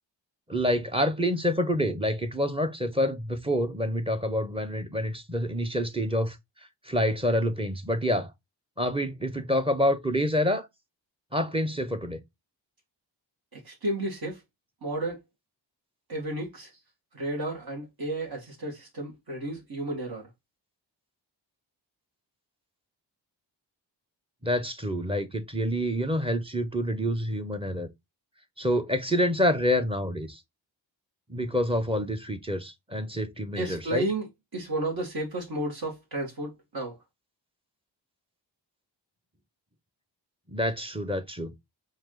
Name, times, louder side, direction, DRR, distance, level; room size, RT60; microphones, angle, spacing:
voice 1, 0.5-6.4 6.8-8.3 8.8-10.7 11.3-12.2 24.4-27.9 28.6-30.4 31.3-34.0 40.5-41.5, equal, 10° right, 1.0 m, -27 dB
voice 2, 13.5-14.4 14.8-15.2 16.1-16.7 17.1-20.3 33.6-37.0, right 1 dB, 55° right, 1.9 m, -32 dB
4.7 x 2.8 x 3.8 m
cardioid pair, 55°, 45 cm